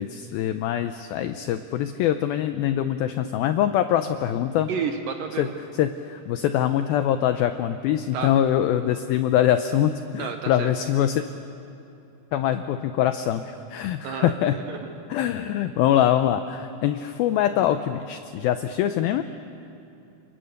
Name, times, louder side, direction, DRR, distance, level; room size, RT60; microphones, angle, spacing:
voice 1, 0.0-4.7 5.4-5.5 5.7-11.2 12.3-14.6 15.1-19.2, left 11 dB, 85° left, 9 dB, 2.1 m, -23 dB
voice 2, 4.7-5.6 8.1-8.3 10.2-10.7 14.0-14.3 14.7-14.9, right 6 dB, 75° right, 5 dB, 2.2 m, -30 dB
28.0 x 24.5 x 6.5 m, 2.8 s
omnidirectional pair, 5.0 m